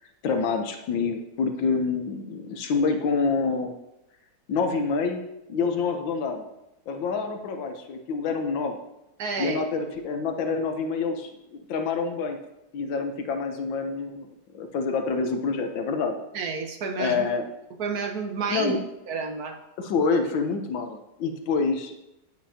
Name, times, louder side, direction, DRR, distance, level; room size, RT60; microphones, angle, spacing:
voice 1, 0.2-3.7 4.5-6.5 6.9-8.8 9.4-12.4 12.7-14.3 14.5-16.1 17.0-17.5 18.5-18.8 19.8-22.1, left 4 dB, 90° left, 5 dB, 1.7 m, -27 dB
voice 2, 9.2-9.6 16.3-17.2 17.8-18.7 19.1-19.6, right 4 dB, 60° right, 4 dB, 1.5 m, -30 dB
10.5 x 9.4 x 2.8 m, 0.90 s
omnidirectional pair, 2.0 m